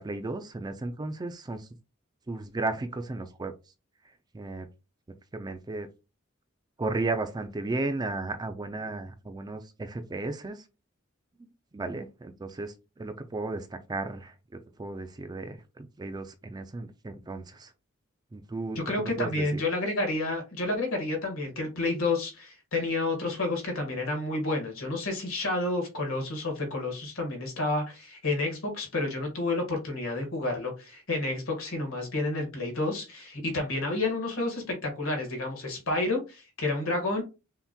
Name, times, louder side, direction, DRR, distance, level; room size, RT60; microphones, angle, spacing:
voice 1, 0.0-1.7 2.3-3.5 4.3-4.7 5.3-5.9 6.8-10.6 11.7-17.7 18.3-19.6, right 2 dB, 20° right, 0.4 m, -34 dB
voice 2, 18.7-37.2, left 2 dB, 70° left, 1.5 m, -30 dB
5.6 x 2.8 x 2.2 m
head